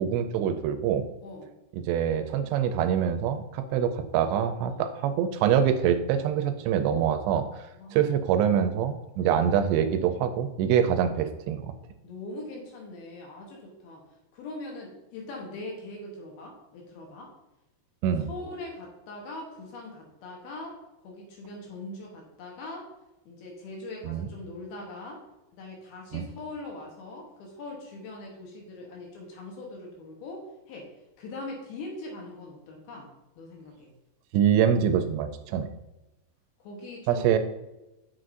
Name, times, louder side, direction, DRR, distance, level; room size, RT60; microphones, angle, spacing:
voice 1, 0.0-1.1 1.9-7.5 7.9-11.7 18.0-18.3 24.1-24.3 26.1-26.2 34.3-35.7 37.1-37.4, right 8 dB, 85° right, 8 dB, 2.7 m, -25 dB
voice 2, 1.2-1.6 4.7-4.9 7.7-8.1 12.0-14.0 14.3-17.3 18.3-22.9 23.3-25.2 25.5-30.9 31.2-33.1 33.4-33.9 36.6-37.3, left 2 dB, 70° left, -1 dB, 2.7 m, -41 dB
7.7 x 5.9 x 2.5 m, 0.96 s
omnidirectional pair, 5.0 m